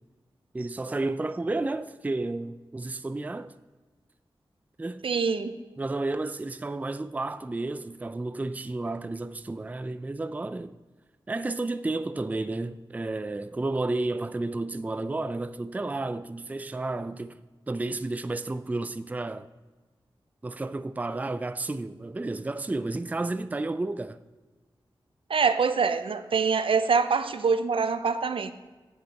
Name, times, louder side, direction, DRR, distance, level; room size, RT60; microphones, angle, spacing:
voice 1, 0.5-3.6 4.8-5.1 5.8-10.8 11.3-17.4 17.7-19.5 20.4-24.2, right 2 dB, 15° right, 0.3 m, -31 dB
voice 2, 5.0-5.6 25.3-28.5, right 5 dB, 80° right, 0.5 m, -25 dB
8.3 x 7.1 x 4.1 m
wide cardioid pair, 70°, 9 cm